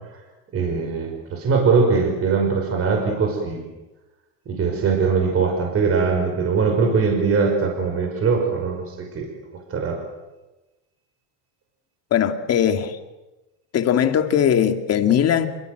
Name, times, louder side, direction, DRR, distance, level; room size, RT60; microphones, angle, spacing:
voice 1, 0.5-3.6 4.5-9.3 9.7-10.0, right 5 dB, 30° right, 3 dB, 5.7 m, -21 dB
voice 2, 12.1-13.0 13.7-15.5, left 9 dB, 30° left, 7 dB, 2.4 m, -19 dB
28.5 x 24.0 x 8.0 m, 1.1 s
supercardioid pair, 150°, 47 cm